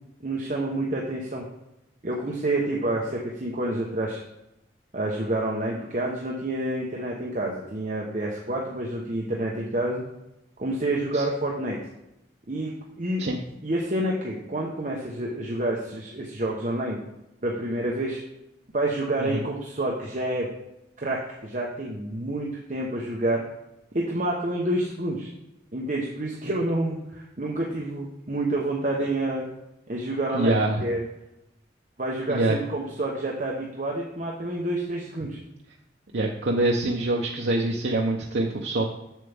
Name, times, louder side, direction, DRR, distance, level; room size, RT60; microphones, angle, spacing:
voice 1, 0.2-1.4 2.0-4.2 4.9-10.0 10.6-11.8 12.5-12.7 13.0-17.0 17.4-18.2 18.7-20.5 21.0-23.4 23.9-25.3 25.7-29.4 29.9-31.0 32.0-35.4, right 1 dB, 45° right, -2 dB, 0.9 m, -28 dB
voice 2, 30.3-30.8 32.3-32.6 36.1-38.8, right 2 dB, 75° right, 0 dB, 0.7 m, -25 dB
7.5 x 6.8 x 3.4 m, 0.87 s
head